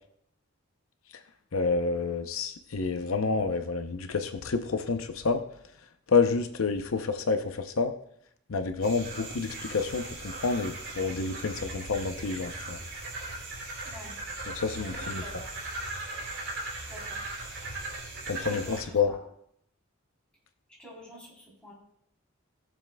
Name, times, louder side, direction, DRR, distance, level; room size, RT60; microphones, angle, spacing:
voice 1, 1.5-5.4 6.1-7.9 8.5-12.8 14.5-15.2 18.3-19.1, left 4 dB, 85° left, 8 dB, 0.7 m, -28 dB
sound 1, 8.8-18.8, right 2 dB, 60° right, 3.2 m, -38 dB
voice 2, 13.8-14.1 14.9-15.5 16.9-17.2 18.3-19.2 20.8-21.7, equal, 5° left, -6 dB, 3.5 m, -46 dB
19.5 x 7.2 x 2.3 m, 0.72 s
head